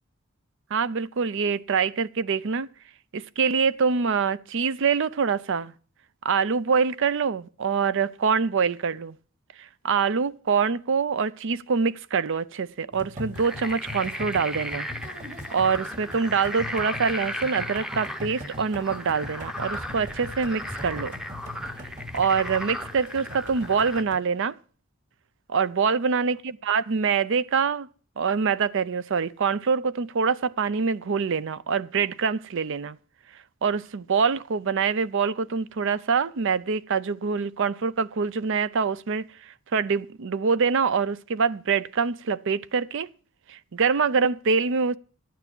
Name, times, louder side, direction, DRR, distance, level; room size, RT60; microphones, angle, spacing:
voice 1, 0.7-2.7 3.1-5.7 6.2-9.2 9.6-14.9 15.5-21.1 22.1-24.6 25.5-27.9 28.2-33.0 33.6-43.1 43.5-45.0, right 5 dB, 65° right, 0.5 m, -25 dB
sound 1, 12.9-24.2, left 1 dB, 40° right, 2.7 m, -41 dB
sound 2, 13.3-24.0, equal, 5° right, 0.7 m, -36 dB
13.0 x 9.4 x 6.1 m
head